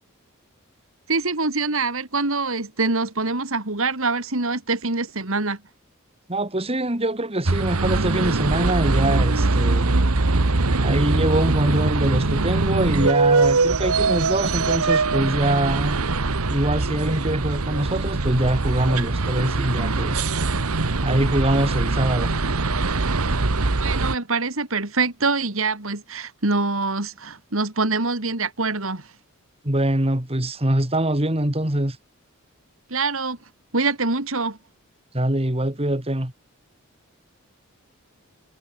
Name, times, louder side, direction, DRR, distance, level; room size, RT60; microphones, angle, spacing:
voice 1, 1.1-5.6 23.8-29.1 32.9-33.4 33.7-34.6, right 3 dB, 65° right, 2.6 m, -24 dB
voice 2, 6.3-10.0 10.8-16.0 16.5-20.3 21.0-22.3 29.6-32.0 35.1-36.3, right 1 dB, 25° right, 2.6 m, -23 dB
sound 1, 7.5-24.2, right 3 dB, 90° right, 1.4 m, -22 dB
head